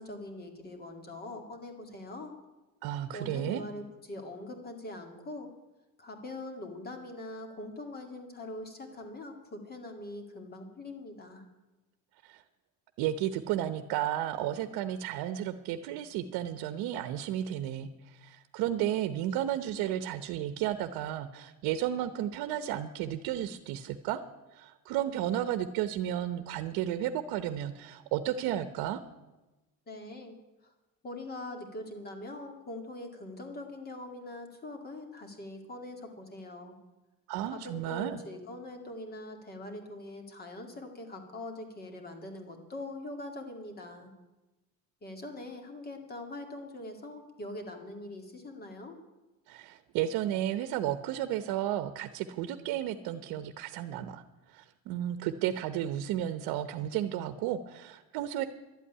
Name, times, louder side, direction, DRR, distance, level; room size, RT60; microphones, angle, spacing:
voice 1, 0.0-2.3 3.1-5.5 6.0-11.4 29.9-30.4 30.6-30.7 31.0-36.8 37.5-44.1 45.0-49.0, left 1 dB, 25° left, 5 dB, 2.1 m, -42 dB
voice 2, 2.8-3.6 12.2-12.4 13.0-24.2 24.5-29.0 37.3-38.2 49.5-54.2 54.5-58.4, right 11 dB, 75° right, 11 dB, 0.9 m, -33 dB
12.0 x 8.4 x 9.9 m, 1.1 s
cardioid pair, 155°, 36 cm